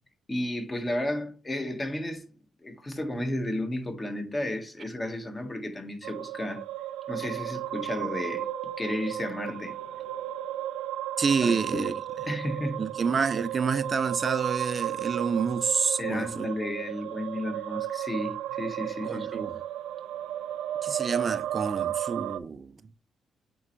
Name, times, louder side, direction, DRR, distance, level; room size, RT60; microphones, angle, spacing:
voice 1, 0.3-2.2 2.6-6.7 7.1-8.5 8.8-9.8 11.4-11.9 12.3-12.9 16.0-19.3, left 1 dB, 20° left, 1.5 m, -33 dB
sound 1, 6.0-22.4, right 12 dB, 90° right, 0.4 m, -34 dB
voice 2, 11.2-11.9 12.8-16.5 19.0-19.6 20.8-22.8, right 5 dB, 40° right, 0.5 m, -28 dB
8.2 x 4.4 x 3.2 m
cardioid pair, 90°, 0 cm